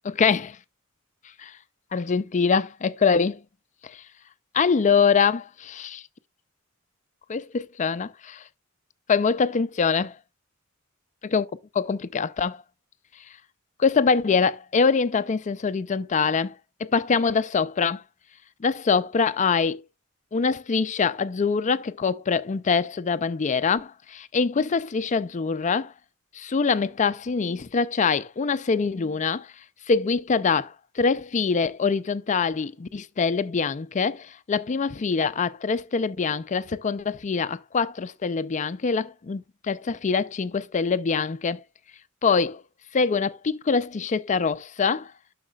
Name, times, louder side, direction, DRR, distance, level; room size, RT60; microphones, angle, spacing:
voice 1, 0.0-0.6 1.4-1.5 1.9-3.4 3.8-4.0 4.5-6.0 7.3-8.4 9.1-10.1 11.3-11.5 11.7-12.6 13.8-16.5 16.8-18.0 18.6-19.8 20.3-25.9 26.3-29.5 29.9-41.6 42.2-42.6 42.9-45.1, left 5 dB, 35° left, 0.4 m, -24 dB
11.0 x 6.5 x 2.3 m
head